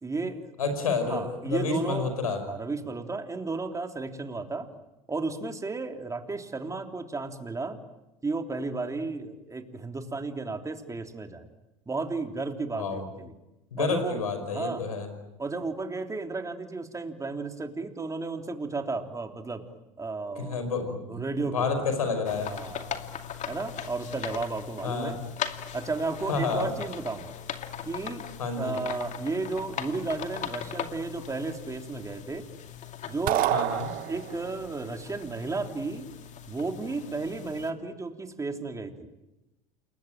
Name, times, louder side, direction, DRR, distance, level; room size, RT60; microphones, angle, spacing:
voice 1, 0.0-0.5 1.0-2.1 2.5-4.7 5.1-7.8 8.2-11.5 11.9-13.3 13.8-14.9 15.4-19.6 20.0-21.9 22.5-23.0 23.5-25.2 25.7-27.3 27.8-32.4 33.0-33.6 34.1-36.1 36.5-39.1, right 3 dB, 15° right, 5 dB, 3.4 m, -33 dB
voice 2, 0.6-2.4 12.7-13.0 13.7-15.1 20.4-22.5 24.8-25.2 26.3-26.7 28.4-28.7 33.5-33.9, left 4 dB, 90° left, 8 dB, 5.4 m, -29 dB
sound 1, 22.2-37.7, left 9 dB, 40° left, 2.4 m, -39 dB
sound 2, 33.3-34.6, right 15 dB, 50° right, 1.2 m, -27 dB
28.5 x 21.5 x 9.0 m, 0.97 s
hypercardioid pair, 80°, 18 cm